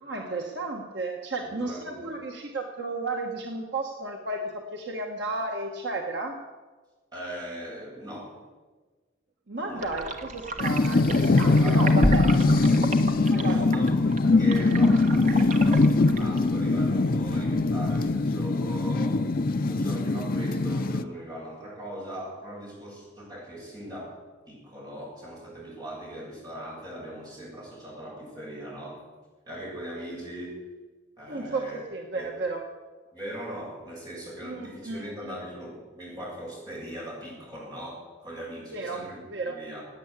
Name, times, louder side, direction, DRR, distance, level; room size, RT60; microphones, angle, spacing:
voice 1, 0.0-6.4 9.5-12.3 13.3-13.7 31.3-32.6 34.4-35.3 38.7-39.6, right 2 dB, 60° right, 2 dB, 1.4 m, -33 dB
voice 2, 1.4-2.1 7.1-8.4 9.7-9.9 11.6-11.9 12.7-19.4 19.7-24.2 24.5-29.0 29.5-30.6 31.2-31.8 32.1-32.4 33.1-39.8, right 1 dB, 20° right, -5 dB, 7.2 m, -40 dB
sound 1, 9.8-18.1, right 1 dB, 40° right, 1.3 m, -33 dB
sound 2, 10.6-21.0, left 3 dB, 45° left, 0.5 m, -22 dB
18.0 x 9.4 x 8.4 m, 1.3 s
head